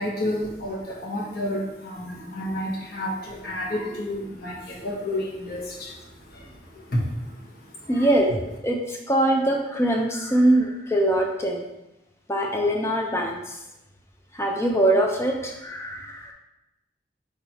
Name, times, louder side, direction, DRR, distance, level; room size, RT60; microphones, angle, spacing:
voice 1, 0.0-8.1, left 1 dB, 60° left, -3 dB, 1.0 m, -31 dB
voice 2, 7.9-8.3 8.6-11.7 12.3-13.6 14.3-16.3, right 1 dB, 15° left, 1 dB, 0.4 m, -23 dB
5.5 x 3.2 x 2.8 m, 0.92 s
head